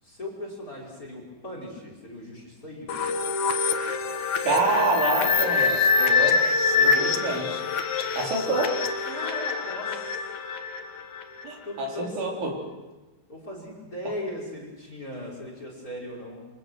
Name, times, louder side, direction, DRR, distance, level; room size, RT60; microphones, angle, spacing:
voice 1, 0.0-3.1 6.7-7.2 9.0-10.3 11.6-12.2 13.3-16.5, left 1 dB, 15° left, 0 dB, 5.6 m, -38 dB
sound 1, 2.9-11.5, left 5 dB, 70° left, 1.7 m, -25 dB
voice 2, 4.4-6.4 6.8-7.5 8.2-8.7 11.4-12.5, right 3 dB, 75° right, 0 dB, 6.1 m, -27 dB
27.0 x 26.5 x 6.3 m, 1.1 s
omnidirectional pair, 5.5 m